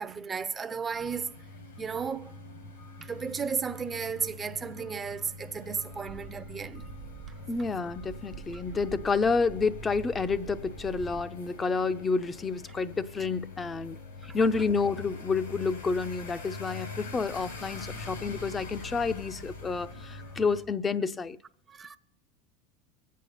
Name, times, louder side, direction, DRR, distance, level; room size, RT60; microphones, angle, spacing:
voice 1, 0.0-1.3 1.8-2.4 3.0-6.9 8.5-8.6 14.2-14.4 21.7-22.0, right 6 dB, 25° right, 0.7 m, -34 dB
sound 1, 0.9-20.6, left 3 dB, 90° left, 5.2 m, -44 dB
sound 2, 5.9-11.3, right 11 dB, 60° right, 1.2 m, -46 dB
voice 2, 7.5-14.0 14.3-21.4, left 4 dB, 25° left, 0.6 m, -29 dB
24.0 x 8.4 x 4.2 m
hypercardioid pair, 90°, 0 cm